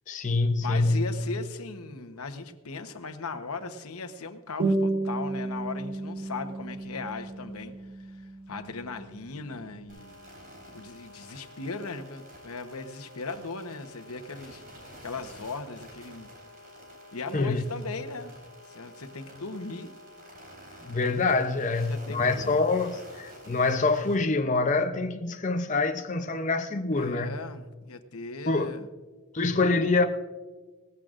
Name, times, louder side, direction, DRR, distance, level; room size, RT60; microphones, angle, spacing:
voice 1, 0.1-1.1 17.3-17.6 20.8-27.3 28.5-28.7 29.3-30.1, left 3 dB, 35° left, 0.6 m, -25 dB
voice 2, 0.6-10.1 10.7-14.6 15.0-16.3 17.1-18.3 18.7-19.9 21.6-22.6 26.9-28.9, left 3 dB, 90° left, 1.0 m, -38 dB
sound 1, 4.6-9.6, right 2 dB, 85° right, 3.6 m, -32 dB
sound 2, 9.9-24.2, left 1 dB, 40° right, 4.3 m, -49 dB
19.0 x 15.0 x 2.5 m
head